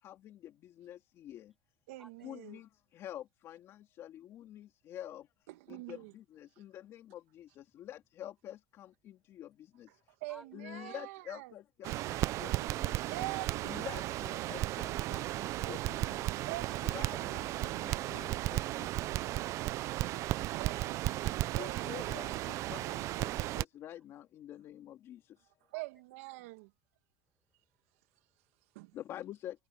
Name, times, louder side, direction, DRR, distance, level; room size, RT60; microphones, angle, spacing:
voice 1, 0.0-1.5 2.2-5.3 5.7-10.1 10.5-13.0 13.6-16.4 16.9-19.2 21.5-25.5 28.9-29.7, left 12 dB, 40° left, 2.4 m, -48 dB
voice 2, 1.9-2.6 5.5-6.2 10.2-11.6 13.1-14.1 16.5-17.4 19.3-19.8 20.3-22.1 25.7-26.7 28.7-29.0, right 20 dB, 75° right, 2.0 m, -45 dB
voice 3, 10.3-11.0 16.7-17.2 19.5-19.9 21.7-21.9 25.7-25.8 27.6-28.8, equal, ahead, 5.2 m, -59 dB
Crackle, 11.8-23.6, right 16 dB, 45° right, 0.5 m, -35 dB
supercardioid pair, 145°, 7 cm